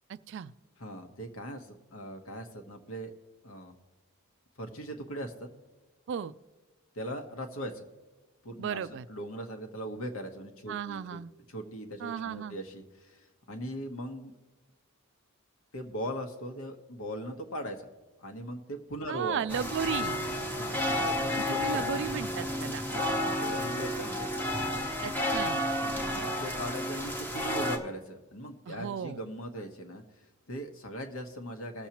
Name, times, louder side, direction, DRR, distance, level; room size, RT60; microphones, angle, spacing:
voice 1, 0.1-0.5 6.1-6.3 8.6-9.1 10.7-11.3 12.0-12.6 19.1-20.2 21.3-22.8 25.0-25.7 28.7-29.2, right 7 dB, 55° right, 15 dB, 0.3 m, -35 dB
voice 2, 0.8-3.1 3.4-3.8 4.6-5.5 6.9-7.8 8.4-11.2 11.5-14.3 15.7-17.9 18.2-19.4 20.6-21.8 22.9-24.5 25.8-31.9, equal, 65° left, 5 dB, 1.2 m, -40 dB
sound 1, 19.5-27.8, left 1 dB, 10° left, 0.9 m, -31 dB
20.0 x 7.1 x 2.9 m, 1.2 s
head